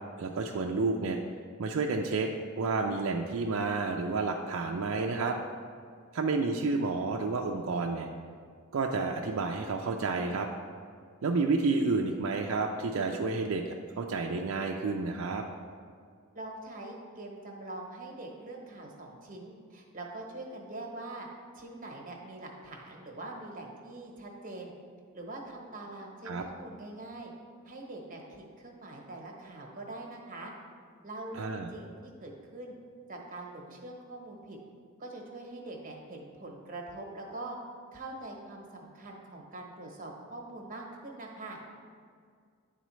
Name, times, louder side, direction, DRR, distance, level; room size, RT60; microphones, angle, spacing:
voice 1, 0.2-1.2 1.6-2.3 2.6-5.4 6.1-8.1 8.7-10.5 11.2-13.6 14.0-15.4 26.3-26.4 31.3-31.7, right 3 dB, 65° right, 1 dB, 0.4 m, -30 dB
voice 2, 16.3-21.3 21.5-24.7 25.1-27.3 27.6-30.5 31.0-32.8 33.1-34.6 35.0-37.6 37.9-41.6, right 2 dB, 40° right, 0 dB, 1.0 m, -43 dB
10.0 x 4.0 x 3.1 m, 2.1 s
head